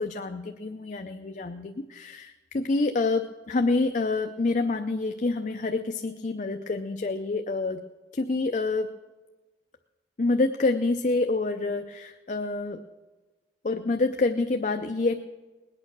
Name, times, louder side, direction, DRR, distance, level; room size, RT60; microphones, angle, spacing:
voice 1, 0.0-7.8 8.1-8.9 10.2-12.8 13.6-15.2, left 3 dB, 45° left, 6 dB, 0.5 m, -27 dB
20.5 x 8.7 x 6.1 m, 1.2 s
head